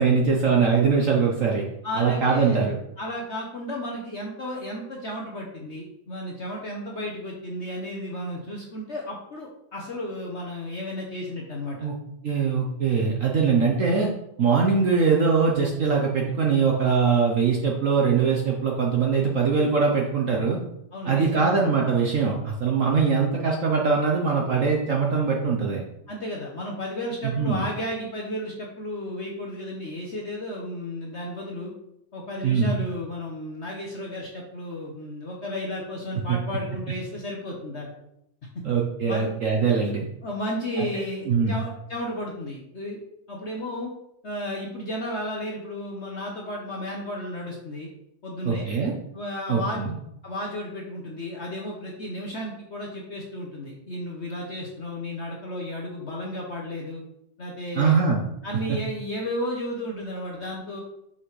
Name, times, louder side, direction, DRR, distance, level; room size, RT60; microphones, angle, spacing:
voice 1, 0.0-1.7 1.9-2.7 11.8-12.0 12.2-14.1 14.4-20.6 21.0-25.8 27.2-27.6 32.4-32.8 36.3-36.4 38.6-40.1 40.8-40.9 41.3-41.5 48.4-48.9 49.5-49.9 57.8-58.2, right 5 dB, 60° right, -1 dB, 0.9 m, -22 dB
voice 2, 1.8-2.7 3.0-11.8 20.9-21.5 26.1-31.7 32.1-37.9 39.0-39.3 40.2-43.0 43.3-43.9 44.2-47.9 48.2-48.7 49.1-49.8 50.2-57.0 57.4-58.0 58.4-60.8, left 1 dB, 50° left, -1 dB, 0.9 m, -33 dB
5.9 x 5.6 x 3.2 m, 0.79 s
omnidirectional pair, 2.1 m